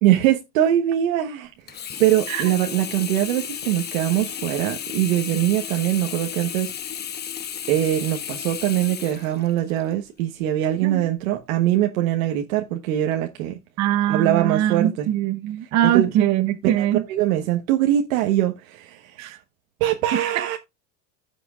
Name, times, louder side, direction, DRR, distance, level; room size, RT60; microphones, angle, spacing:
voice 1, 0.0-1.5 2.0-6.7 7.7-13.6 14.1-15.1 15.6-16.1 16.8-19.2 19.8-20.6, right 12 dB, 80° right, 1.3 m, -22 dB
Sink (filling or washing), 1.7-9.9 10.5-10.6, left 8 dB, 25° left, 1.0 m, -33 dB
voice 2, 13.8-17.0 19.2-19.4 20.4-20.5, right 12 dB, 40° right, 1.0 m, -22 dB
15.5 x 6.0 x 2.4 m
supercardioid pair, 130°, 41 cm